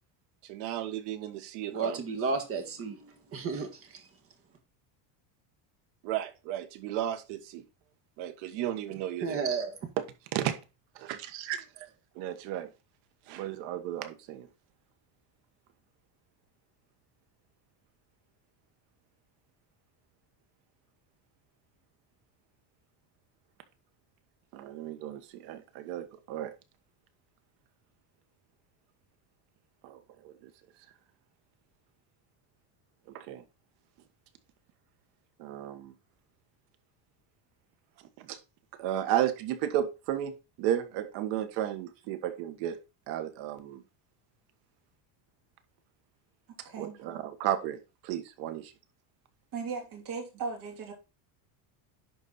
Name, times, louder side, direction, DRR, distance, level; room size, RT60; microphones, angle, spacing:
voice 1, 0.5-2.0 6.0-7.6 8.2-9.4 10.3-10.5 10.9-11.9 12.1-12.7 13.3-14.5 24.5-26.5 29.8-30.5 33.1-33.4 35.4-35.9 38.2-38.4 38.8-42.8 43.1-43.8 46.8-48.7, right 11 dB, 65° right, 1.4 m, -34 dB
voice 2, 1.7-4.1 9.2-9.8, right 4 dB, 30° right, 1.6 m, -33 dB
voice 3, 46.6-47.0 49.5-50.9, right 5 dB, 45° right, 2.9 m, -37 dB
11.0 x 4.2 x 4.0 m
cardioid pair, 165°, 46 cm